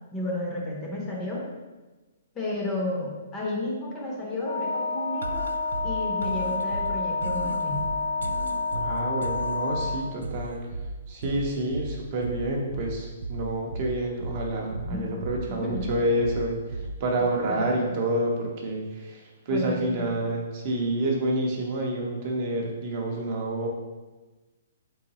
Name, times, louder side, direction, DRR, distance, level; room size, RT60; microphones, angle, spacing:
voice 1, 0.1-1.5 2.3-5.5 5.8-7.9 14.8-15.2 15.5-15.9 17.5-17.9 19.5-20.1, left 2 dB, 10° left, -2 dB, 0.6 m, -32 dB
Wind instrument woodwind instrument, 4.4-10.2, left 4 dB, 90° left, 0.7 m, -29 dB
sound 1, 5.2-17.2, right 2 dB, 85° right, 0.3 m, -36 dB
voice 2, 8.7-10.6 11.1-23.7, right 1 dB, 30° right, 0 dB, 0.6 m, -28 dB
4.5 x 3.8 x 2.9 m, 1.2 s
hypercardioid pair, 175°, 0 cm